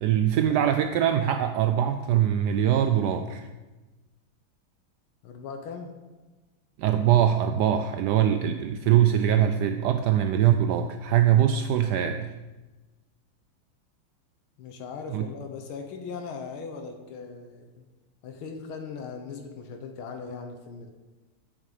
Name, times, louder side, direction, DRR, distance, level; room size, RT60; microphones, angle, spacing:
voice 1, 0.0-3.5 6.8-12.3 15.1-15.3, right 10 dB, 75° right, 8 dB, 0.9 m, -22 dB
voice 2, 5.2-5.9 14.6-17.9 18.2-20.9, left 5 dB, 90° left, 4 dB, 1.8 m, -39 dB
9.9 x 8.7 x 4.9 m, 1.2 s
omnidirectional pair, 2.2 m